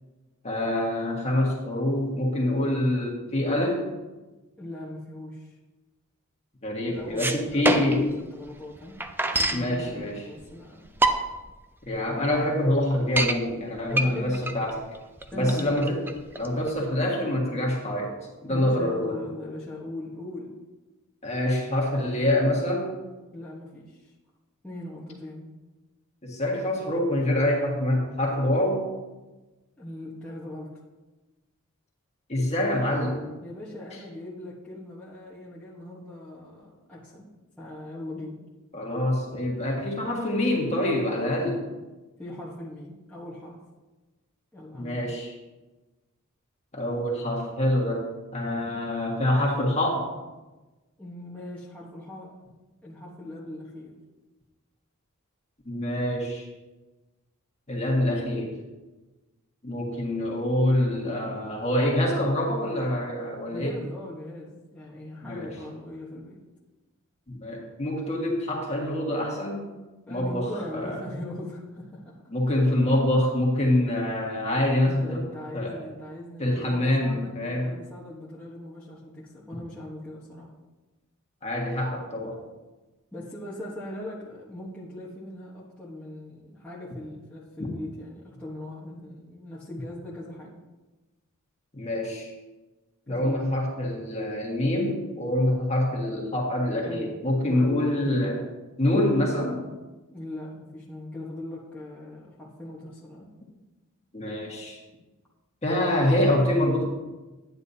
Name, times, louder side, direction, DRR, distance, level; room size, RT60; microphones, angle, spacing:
voice 1, 0.4-3.8 6.6-8.1 9.5-10.2 11.8-14.8 15.3-16.0 16.3-18.1 18.4-19.2 21.2-22.9 26.2-28.9 32.3-33.2 38.7-41.6 44.8-45.4 46.7-50.1 55.6-56.5 57.7-58.5 59.6-63.8 65.2-65.5 67.3-69.7 70.1-70.5 70.7-71.0 72.3-75.2 75.5-75.8 76.4-77.7 81.4-82.4 87.6-87.7 91.7-92.3 93.1-98.4 98.8-99.6 104.1-104.8 105.6-106.8, left 1 dB, 30° left, -1 dB, 1.7 m, -25 dB
voice 2, 4.6-5.6 6.9-8.0 8.3-9.0 9.3-11.0 13.9-14.4 15.3-15.8 18.5-20.5 23.3-24.1 24.6-25.5 29.8-30.7 33.4-37.3 37.6-38.4 42.2-43.6 44.5-45.0 51.0-52.3 52.8-53.9 63.5-66.4 70.1-72.2 74.9-80.5 83.1-90.6 93.1-93.4 96.9-97.2 97.5-97.7 100.1-103.3, left 1 dB, 5° left, -7 dB, 1.1 m, -40 dB
sound 1, 7.0-8.1 8.5-8.6 8.8-9.7 10.4-10.5 10.9-11.5 12.0-12.1 12.3-12.4 12.8-13.4 13.9-16.8, right 2 dB, 10° right, 0.4 m, -25 dB
9.6 x 9.3 x 2.8 m, 1.2 s
head